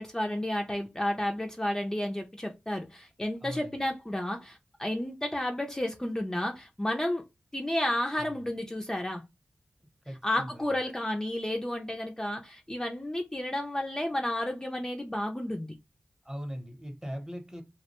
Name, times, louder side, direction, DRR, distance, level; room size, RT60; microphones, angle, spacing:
voice 1, 0.0-7.2 7.5-9.2 10.2-15.7, left 1 dB, 15° left, 0.4 m, -32 dB
voice 2, 3.4-3.8 8.2-8.4 10.0-10.7 16.2-17.6, equal, 20° right, 0.8 m, -40 dB
2.3 x 2.1 x 2.8 m
wide cardioid pair, 60°, 4 cm